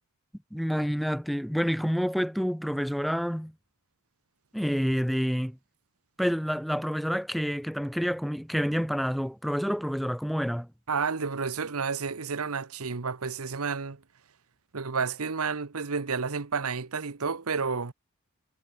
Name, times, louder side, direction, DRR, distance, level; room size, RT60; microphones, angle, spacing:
voice 1, 0.5-3.5 4.5-5.6 6.2-10.7, equal, ahead, 2.2 m, -28 dB
voice 2, 10.9-14.0 14.7-17.9, right 5 dB, 75° right, 1.0 m, -31 dB
head